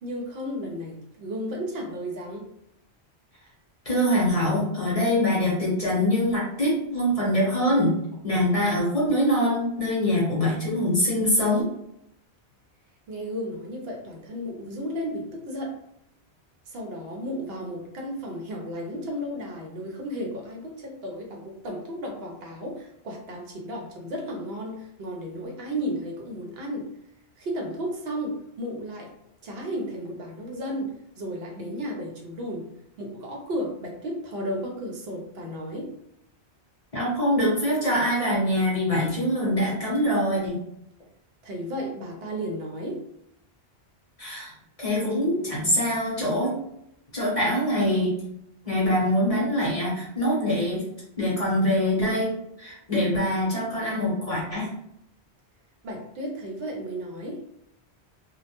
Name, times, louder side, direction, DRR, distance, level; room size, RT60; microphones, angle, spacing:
voice 1, 0.0-2.5 13.1-15.7 16.7-26.9 27.4-29.1 29.4-32.7 33.0-35.9 41.4-43.0 55.8-57.4, equal, 70° right, 0 dB, 0.8 m, -33 dB
voice 2, 3.9-7.9 8.2-11.7 36.9-40.6 44.2-44.5 44.8-46.6 47.1-48.1 48.7-50.8 51.2-52.3 52.6-54.7, left 1 dB, 35° left, -6 dB, 0.8 m, -24 dB
2.2 x 2.0 x 2.8 m, 0.77 s
omnidirectional pair, 1.1 m